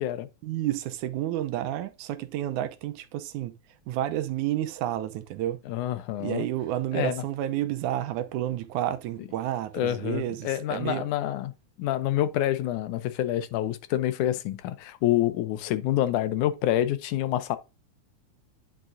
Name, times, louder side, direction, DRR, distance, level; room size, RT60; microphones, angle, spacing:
voice 1, 0.4-3.6 3.9-5.6 6.2-11.1, right 13 dB, 90° right, 2.2 m, -30 dB
voice 2, 5.7-6.5 6.9-7.2 9.2-9.3 9.7-11.5 11.8-17.6, left 13 dB, 85° left, 2.3 m, -27 dB
10.0 x 5.9 x 2.6 m
omnidirectional pair, 3.4 m